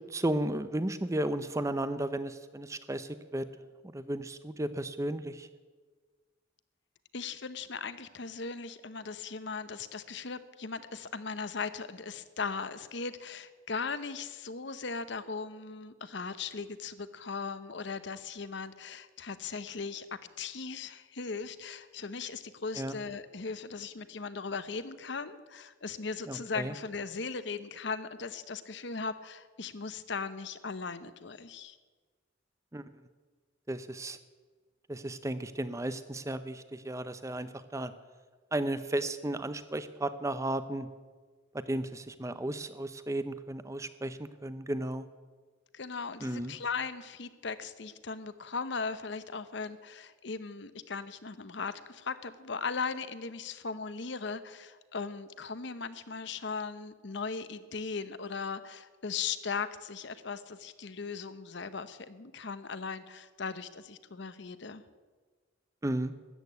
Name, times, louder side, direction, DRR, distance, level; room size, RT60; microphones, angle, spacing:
voice 1, 0.1-3.4 3.9-5.5 22.8-23.0 26.3-26.7 32.7-32.8 33.7-34.2 34.9-37.9 38.5-40.9 41.7-45.1 46.2-46.5 65.8-66.1, right 1 dB, 15° right, 12 dB, 0.6 m, -34 dB
voice 2, 7.1-20.1 20.4-31.8 45.7-64.8, left 5 dB, 60° left, 13 dB, 0.8 m, -38 dB
13.5 x 8.9 x 9.4 m, 1.4 s
head